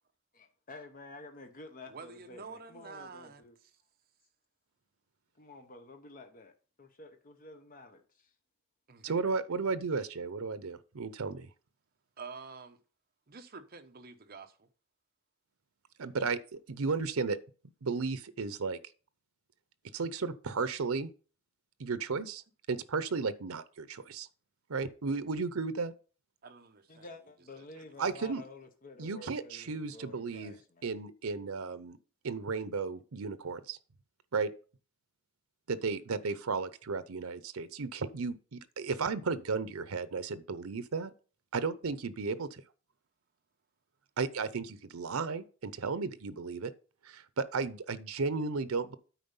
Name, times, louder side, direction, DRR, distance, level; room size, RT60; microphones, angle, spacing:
voice 1, 0.3-3.6 5.4-6.5 6.8-8.3 26.9-31.0, left 2 dB, 40° left, 1.0 m, -50 dB
voice 2, 1.9-3.7 8.9-9.0 12.2-12.8 13.3-14.7 26.4-27.2 27.6-27.7, right 4 dB, 45° right, 0.9 m, -48 dB
voice 3, 9.0-11.5 16.0-17.4 17.8-18.8 19.9-21.1 21.8-22.4 22.7-24.3 24.7-25.9 28.0-28.4 29.0-30.6 30.8-32.0 32.2-33.8 34.3-34.5 35.7-41.1 41.5-42.6 44.2-46.7 47.0-49.0, right 4 dB, 85° right, 0.7 m, -34 dB
9.2 x 4.3 x 5.5 m
head